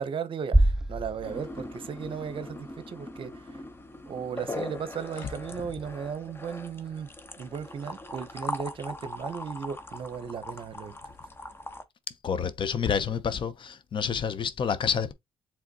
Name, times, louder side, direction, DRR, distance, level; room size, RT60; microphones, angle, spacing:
voice 1, 0.0-3.6 4.1-7.1 7.4-10.9, right 7 dB, 55° right, 0.7 m, -36 dB
sound 1, 0.5-2.6, right 1 dB, 5° right, 0.3 m, -26 dB
sound 2, 1.2-11.8, left 2 dB, 20° left, 0.8 m, -40 dB
voice 2, 12.2-15.1, left 7 dB, 50° left, 0.6 m, -28 dB
4.8 x 3.5 x 2.8 m
cardioid pair, 85°, 11 cm